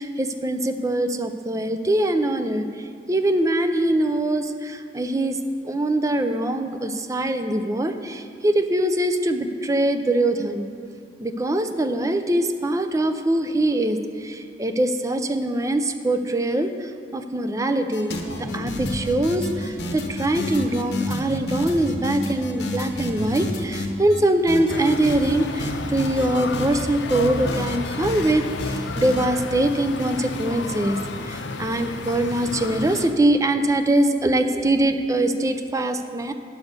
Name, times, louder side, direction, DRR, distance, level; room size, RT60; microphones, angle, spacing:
voice 1, 0.0-5.4 5.6-10.7 11.2-36.3, right 1 dB, 20° right, 8 dB, 0.5 m, -23 dB
sound 1, 17.9-24.2 24.5-25.3 25.6-26.8 27.1-28.3 28.6-29.3, left 1 dB, 70° left, 1.1 m, -30 dB
sound 2, 24.7-33.2, left 3 dB, 85° left, 0.6 m, -32 dB
9.4 x 6.1 x 6.6 m, 2.3 s
head